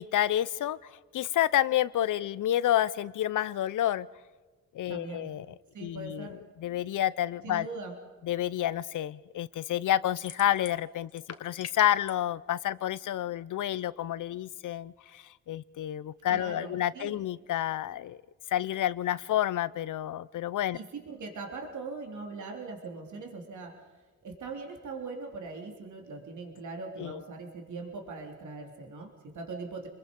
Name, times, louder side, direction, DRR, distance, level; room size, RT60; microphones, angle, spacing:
voice 1, 0.0-4.1 4.7-5.5 5.8-7.7 8.2-18.2 18.5-20.8 27.0-27.2, left 12 dB, 75° left, 18 dB, 0.7 m, -29 dB
voice 2, 4.9-5.3 5.7-6.4 7.4-8.0 16.3-17.2 20.7-23.8 24.2-29.9, right 3 dB, 70° right, 2 dB, 3.4 m, -41 dB
sound 1, 10.2-10.8 11.1-12.1, left 7 dB, 50° left, 1.5 m, -42 dB
27.0 x 21.5 x 5.3 m, 1.3 s
cardioid pair, 90°, 31 cm